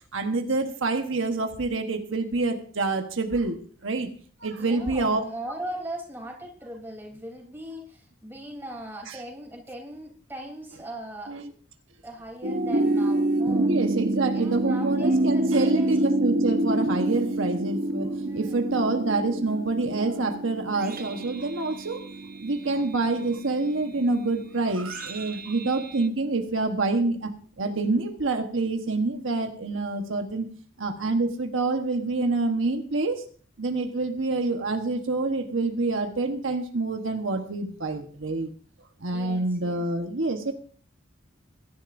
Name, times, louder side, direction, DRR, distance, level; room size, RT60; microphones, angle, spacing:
voice 1, 0.1-4.1 4.4-5.2 9.1-9.2 11.3-11.4 13.6-22.0 22.4-30.5 30.8-33.2 33.6-38.5 39.0-40.5, right 3 dB, 75° right, 1.2 m, -27 dB
voice 2, 4.6-11.3 12.0-13.7 14.3-16.0 18.2-18.7 39.1-39.8, right 1 dB, 10° right, 3.3 m, -39 dB
sound 1, 12.4-26.0, right 1 dB, 45° right, 0.8 m, -28 dB
21.5 x 11.0 x 2.6 m
head